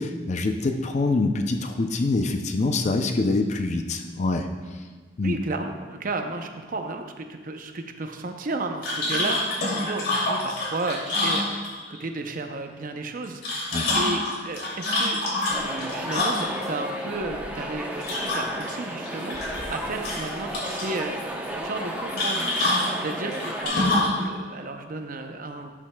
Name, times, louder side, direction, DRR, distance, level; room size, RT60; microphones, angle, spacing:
voice 1, 0.0-4.5 5.2-5.4 13.7-13.9, left 3 dB, 40° left, 5 dB, 0.4 m, -25 dB
voice 2, 5.2-13.6 13.9-19.4 19.7-22.5 23.0-25.7, right 2 dB, 50° right, 5 dB, 0.6 m, -33 dB
sound 1, 8.8-12.0 13.2-16.7 18.0-18.7 19.1-19.8 20.0-20.9 22.2-24.2, left 2 dB, 60° left, 2.5 m, -26 dB
sound 2, 15.5-23.7, right 1 dB, 10° right, 0.7 m, -33 dB
12.5 x 7.3 x 2.2 m, 1.4 s
head